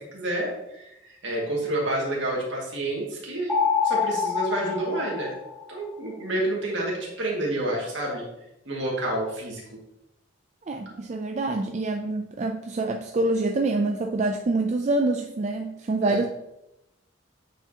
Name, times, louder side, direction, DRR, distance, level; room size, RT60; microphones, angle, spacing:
voice 1, 0.1-3.5 3.8-5.3 5.7-8.3 8.7-9.6 16.0-16.2, right 1 dB, 65° right, -2 dB, 2.0 m, -29 dB
sound 1, 3.5-5.9, left 6 dB, ahead, 1.4 m, -26 dB
voice 2, 10.7-16.2, right 2 dB, 35° right, 3 dB, 0.4 m, -26 dB
9.0 x 4.7 x 2.8 m, 0.87 s
head